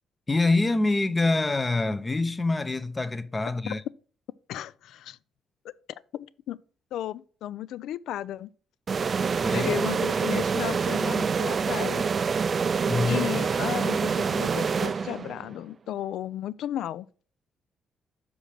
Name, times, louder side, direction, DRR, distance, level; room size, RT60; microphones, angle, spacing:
voice 1, 0.3-3.8 9.4-9.8 12.9-13.4, left 2 dB, 20° left, 0.7 m, -25 dB
voice 2, 4.5-5.2 5.6-5.7 6.1-6.6 6.9-8.5 9.5-12.1 13.1-17.1, left 12 dB, 80° left, 0.3 m, -34 dB
sound 1, 8.9-15.5, right 5 dB, 40° right, 0.3 m, -26 dB
6.3 x 5.1 x 5.8 m
cardioid pair, 90°, 0 cm